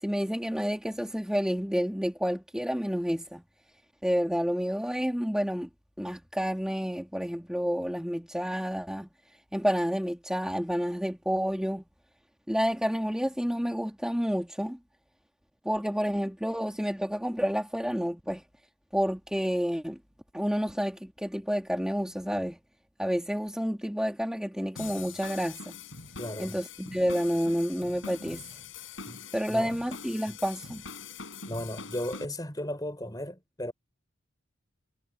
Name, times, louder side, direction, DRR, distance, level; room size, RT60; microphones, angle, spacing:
voice 1, 0.0-3.4 4.0-5.7 6.0-9.1 9.5-11.8 12.5-14.8 15.6-18.4 18.9-20.0 20.3-22.6 23.0-25.8 26.4-28.4 29.3-30.8, equal, 5° right, 2.2 m, -29 dB
sound 1, 24.8-32.3, left 5 dB, 75° left, 5.1 m, -43 dB
voice 2, 26.2-26.6 29.1-29.2 29.5-29.7 30.3-30.4 31.5-33.7, left 1 dB, 20° left, 4.8 m, -35 dB
head